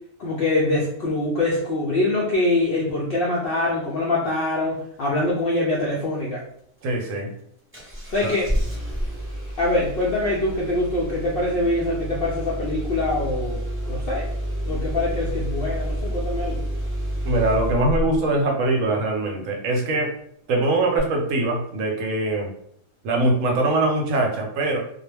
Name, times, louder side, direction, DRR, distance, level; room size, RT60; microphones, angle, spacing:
voice 1, 0.2-6.4 8.1-8.5 9.6-14.3 14.6-16.6, left 2 dB, 65° left, -4 dB, 0.5 m, -24 dB
voice 2, 6.8-7.3 8.2-8.3 17.2-20.1 20.5-22.5 23.0-24.8, right 2 dB, 70° right, 0 dB, 1.0 m, -22 dB
Engine starting, 7.7-18.3 21.0-21.1, equal, 15° right, 0.4 m, -29 dB
2.3 x 2.0 x 3.2 m, 0.67 s
omnidirectional pair, 1.5 m